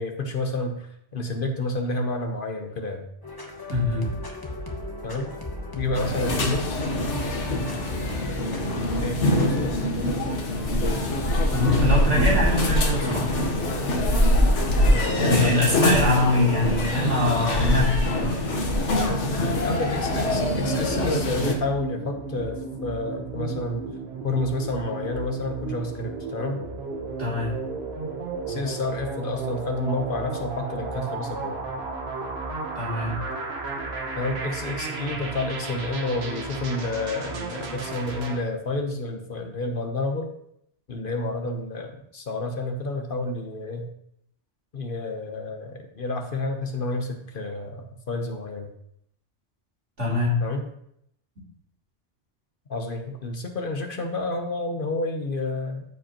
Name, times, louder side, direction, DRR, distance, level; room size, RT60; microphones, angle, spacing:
voice 1, 0.0-3.0 5.0-5.3 5.7-6.8 9.0-9.8 14.9-15.8 19.4-23.8 24.2-26.6 28.5-31.6 34.2-40.3 40.9-43.9 44.7-48.7 50.4-50.7 52.7-55.8, left 2 dB, 50° left, 4 dB, 1.1 m, -30 dB
sound 1, 3.2-9.7, left 2 dB, 20° left, 1.0 m, -35 dB
voice 2, 3.7-4.1 6.3-6.5 11.5-13.3 15.2-18.4 27.2-27.5 32.7-33.1 50.0-50.3, left 1 dB, 85° right, -6 dB, 3.2 m, -24 dB
sound 2, 5.9-21.5, left 1 dB, 85° left, 1.5 m, -23 dB
sound 3, 20.1-38.4, right 4 dB, 60° right, 1.3 m, -34 dB
13.5 x 5.1 x 2.9 m, 0.74 s
omnidirectional pair, 1.2 m